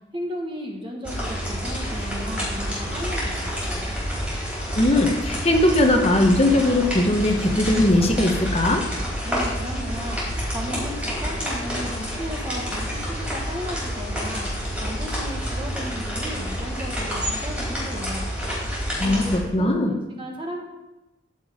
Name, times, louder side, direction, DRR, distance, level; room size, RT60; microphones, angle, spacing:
voice 1, 0.1-4.0 9.2-14.5 14.8-18.3 19.0-20.6, equal, 25° right, 1 dB, 1.5 m, -35 dB
sound 1, 1.0-19.4, equal, 5° right, 4.4 m, -28 dB
voice 2, 4.7-8.8 19.0-19.9, left 1 dB, 30° left, 2 dB, 1.1 m, -19 dB
14.0 x 6.1 x 5.1 m, 1.0 s
head